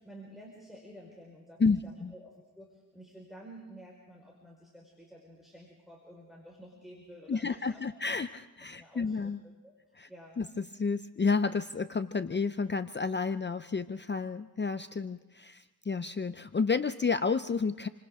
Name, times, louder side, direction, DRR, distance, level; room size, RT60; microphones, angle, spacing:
voice 1, 0.0-8.0 8.8-9.7 10.1-10.4, equal, ahead, -3 dB, 4.7 m, -51 dB
voice 2, 1.6-2.1 7.3-9.4 10.0-10.1 10.4-17.9, left 4 dB, 30° left, 10 dB, 0.6 m, -31 dB
28.5 x 25.5 x 3.6 m, 1.1 s
wide cardioid pair, 105°, 36 cm